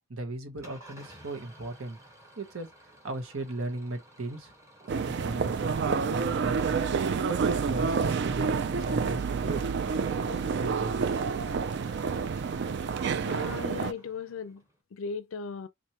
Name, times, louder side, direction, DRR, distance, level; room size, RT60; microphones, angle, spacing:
voice 1, 0.1-2.0 2.4-4.5 4.9-9.6 10.2-11.2, right 2 dB, 85° right, 1.1 m, -37 dB
Engine starting / Idling, 0.6-14.8, equal, 15° right, 1.3 m, -54 dB
sound 1, 4.9-13.9, right 5 dB, 55° right, 0.3 m, -29 dB
voice 2, 13.2-14.6 14.9-15.7, left 5 dB, 75° left, 0.4 m, -37 dB
4.5 x 2.6 x 2.8 m
head